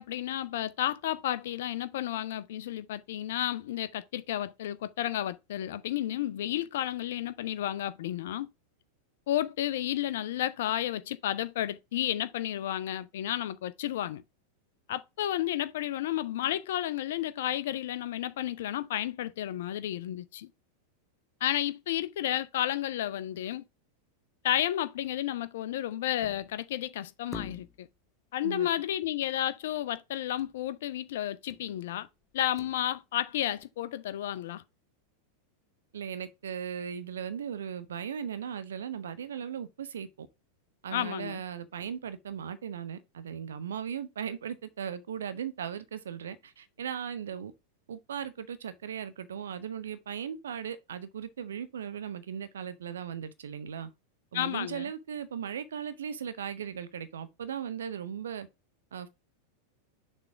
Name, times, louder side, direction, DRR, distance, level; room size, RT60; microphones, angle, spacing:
voice 1, 0.0-8.5 9.3-14.2 14.9-20.5 21.4-23.6 24.4-27.9 28.3-32.1 32.3-34.6 40.9-41.4 54.3-54.9, left 12 dB, 55° left, 0.5 m, -32 dB
sound 1, 26.2-26.7 27.3-28.0 30.4-30.6 30.9-31.0 31.5-31.8 32.3-33.2 33.6-33.7, left 5 dB, 15° left, 0.7 m, -45 dB
voice 2, 35.9-40.3 40.8-47.5 47.9-53.9 54.3-58.5 58.9-59.1, right 8 dB, 65° right, 0.9 m, -37 dB
6.7 x 3.3 x 4.9 m
figure-of-eight pair, 90°, 0 cm